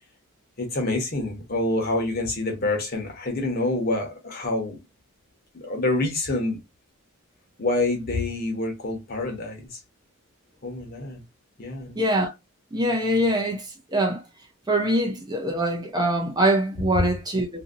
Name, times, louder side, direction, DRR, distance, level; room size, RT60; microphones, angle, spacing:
voice 1, 0.6-4.8 5.5-6.6 7.6-9.8 10.6-11.2 11.6-12.0 17.0-17.1, left 2 dB, 45° left, 1.0 m, -27 dB
voice 2, 11.9-12.3 12.7-14.2 14.7-17.5, right 1 dB, 20° right, 0.6 m, -23 dB
2.8 x 2.7 x 2.5 m
head